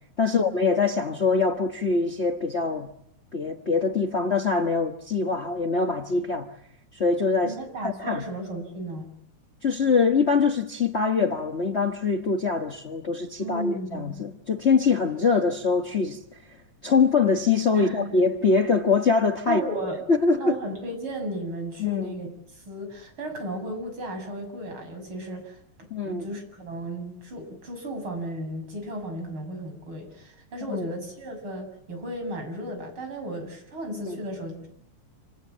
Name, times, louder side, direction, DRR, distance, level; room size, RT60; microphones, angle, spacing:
voice 1, 0.2-2.9 3.3-6.5 6.9-7.5 7.8-8.2 9.6-16.2 16.8-19.6 20.1-20.6 21.8-22.1 25.9-26.3 30.7-30.8 33.9-34.2, left 4 dB, 80° left, 0.6 m, -23 dB
voice 2, 7.4-9.1 13.4-14.3 17.7-18.1 19.5-20.0 20.4-25.6 26.0-34.7, right 1 dB, 45° right, 7.6 m, -35 dB
27.5 x 27.5 x 7.4 m
omnidirectional pair, 3.3 m